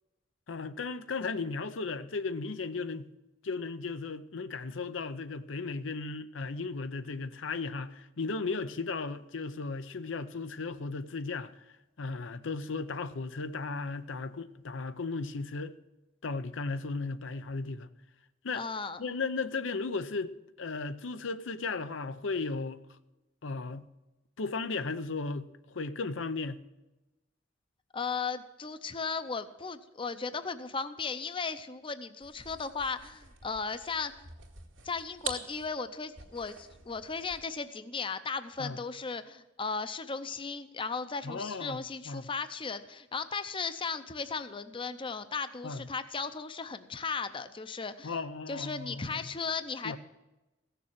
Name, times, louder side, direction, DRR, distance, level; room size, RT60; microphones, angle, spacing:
voice 1, 0.5-3.1 3.4-11.5 12.0-15.7 16.2-17.9 18.4-18.7 19.0-20.3 20.6-22.8 23.4-23.9 24.4-26.6 38.6-38.8 41.2-42.3 45.6-45.9 48.0-49.2 49.8-50.0, left 4 dB, 85° left, 0.7 m, -35 dB
voice 2, 18.5-19.0 27.9-34.3 34.8-48.2 48.5-50.0, left 5 dB, 25° left, 0.6 m, -36 dB
sound 1, 32.2-37.6, right 6 dB, 80° right, 2.1 m, -45 dB
15.5 x 6.9 x 7.4 m
head